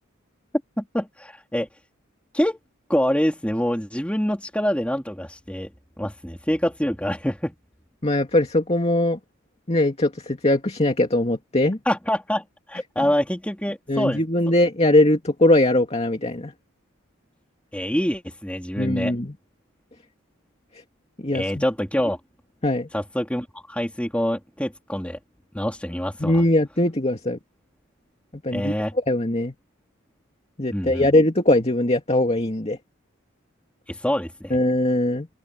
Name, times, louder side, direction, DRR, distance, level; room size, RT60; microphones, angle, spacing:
voice 1, 0.8-1.7 2.3-2.6 2.9-5.7 6.0-7.5 11.8-14.2 17.7-19.1 21.3-22.2 22.9-25.2 25.5-26.4 28.5-28.9 30.7-31.1 33.9-34.6, equal, 5° left, 2.8 m, -25 dB
voice 2, 8.0-9.2 9.7-11.8 13.9-16.5 18.8-19.3 21.2-21.6 22.6-22.9 26.2-27.4 28.4-28.7 29.1-29.5 30.6-32.8 34.5-35.3, left 1 dB, 30° left, 2.4 m, -21 dB
head